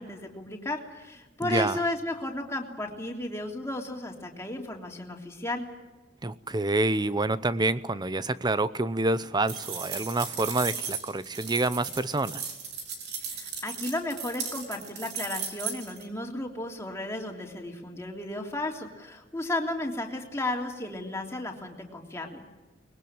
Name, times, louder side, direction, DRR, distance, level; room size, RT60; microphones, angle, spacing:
voice 1, 0.0-5.6 13.2-22.5, left 1 dB, 15° left, 1 dB, 3.2 m, -34 dB
voice 2, 1.4-1.8 6.2-12.4, right 2 dB, 25° right, 15 dB, 0.8 m, -27 dB
sound 1, 9.5-16.0, right 6 dB, 60° right, 4.5 m, -36 dB
24.0 x 21.0 x 8.9 m, 1.2 s
head